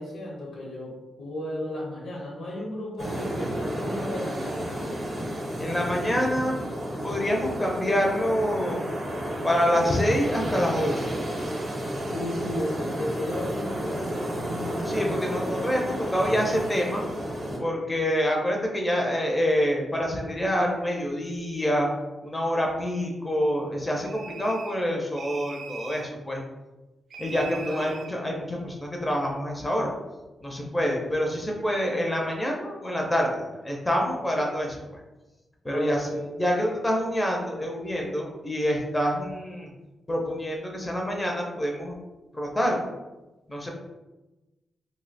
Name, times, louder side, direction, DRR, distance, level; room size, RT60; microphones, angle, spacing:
voice 1, 0.0-4.7 12.1-15.7 27.6-28.0 35.7-36.3 36.5-36.6, left 1 dB, 85° left, -3 dB, 0.8 m, -34 dB
sound 1, 3.0-17.6, equal, 35° right, 0.7 m, -31 dB
voice 2, 5.6-6.6 7.0-8.8 9.4-11.1 14.8-17.0 17.6-21.9 22.2-26.4 27.2-29.9 30.4-35.0 35.6-36.1 36.4-39.7 40.1-42.0 42.3-42.9 43.5-43.7, equal, 10° left, -1 dB, 0.4 m, -26 dB
sound 2, 24.0-24.9 25.2-26.1 27.1-28.2, right 5 dB, 65° right, 0.3 m, -41 dB
2.6 x 2.1 x 3.9 m, 1.1 s
wide cardioid pair, 165°, 0 cm